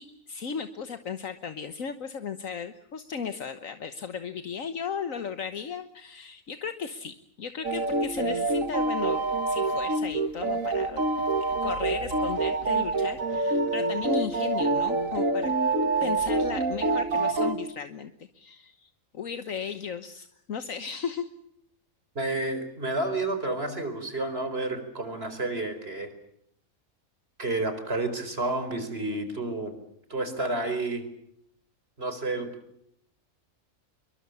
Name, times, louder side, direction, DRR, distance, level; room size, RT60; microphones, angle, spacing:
voice 1, 0.0-11.0 11.6-15.5 16.0-21.3, left 6 dB, 70° left, 9 dB, 1.6 m, -36 dB
sound 1, 7.6-17.5, right 3 dB, 70° right, 2.4 m, -26 dB
voice 2, 22.1-26.1 27.4-29.7 30.1-31.0 32.0-32.5, right 2 dB, 45° right, 10 dB, 4.8 m, -30 dB
27.5 x 23.0 x 7.1 m, 0.72 s
omnidirectional pair, 1.5 m